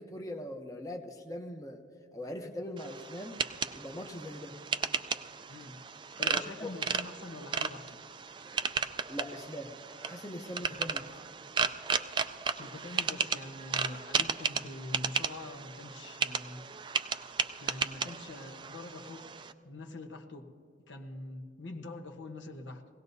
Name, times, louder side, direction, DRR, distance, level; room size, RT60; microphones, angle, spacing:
voice 1, 0.0-1.8 2.1-3.4 3.7-4.5 6.2-6.7 9.1-9.7 10.1-11.2, left 1 dB, 20° left, 3 dB, 0.8 m, -41 dB
sound 1, 2.8-19.5, right 6 dB, 25° right, 0.4 m, -35 dB
voice 2, 5.5-5.8 6.2-8.0 12.6-16.6 17.6-19.3 19.6-20.5 20.9-22.8, left 2 dB, 75° left, 4 dB, 1.1 m, -44 dB
23.0 x 17.5 x 2.7 m, 2.4 s
head